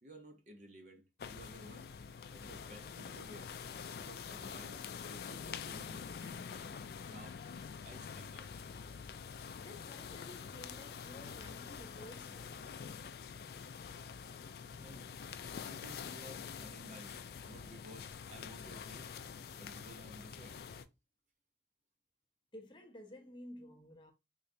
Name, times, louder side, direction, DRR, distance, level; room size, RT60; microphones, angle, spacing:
voice 1, 0.0-1.9 2.3-3.5 3.9-6.7 7.0-7.4 7.8-8.5 14.8-15.1 15.6-19.1 19.6-20.6, right 1 dB, 40° right, 0.5 m, -55 dB
sound 1, 1.2-20.8, left 6 dB, 60° left, 0.3 m, -46 dB
voice 2, 9.5-12.7 22.5-24.1, left 1 dB, 25° left, 0.6 m, -53 dB
3.8 x 3.2 x 2.6 m
head